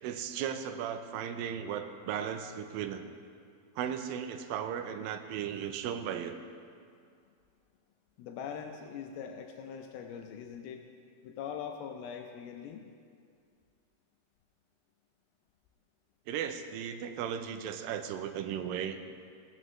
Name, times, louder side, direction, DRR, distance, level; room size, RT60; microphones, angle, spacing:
voice 1, 0.0-3.0 3.8-6.4 16.3-19.0, right 8 dB, 75° right, 8 dB, 2.2 m, -36 dB
voice 2, 8.2-10.8 11.2-12.9, left 7 dB, 80° left, 3 dB, 2.4 m, -42 dB
16.5 x 13.5 x 3.1 m, 2.2 s
omnidirectional pair, 4.5 m